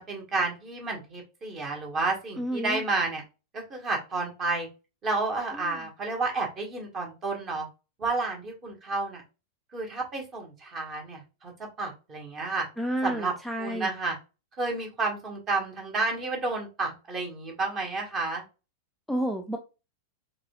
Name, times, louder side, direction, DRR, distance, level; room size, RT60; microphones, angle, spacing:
voice 1, 0.1-3.2 3.5-4.7 5.0-7.7 8.0-9.2 9.7-11.5 11.8-12.7 13.0-13.3 13.6-14.2 14.6-18.4, right 3 dB, 30° right, 1 dB, 1.5 m, -31 dB
voice 2, 2.4-2.8 5.6-5.7 12.8-13.9 19.1-19.6, right 1 dB, ahead, 3 dB, 0.4 m, -30 dB
4.7 x 3.2 x 2.4 m, 0.30 s
figure-of-eight pair, 90°, 0 cm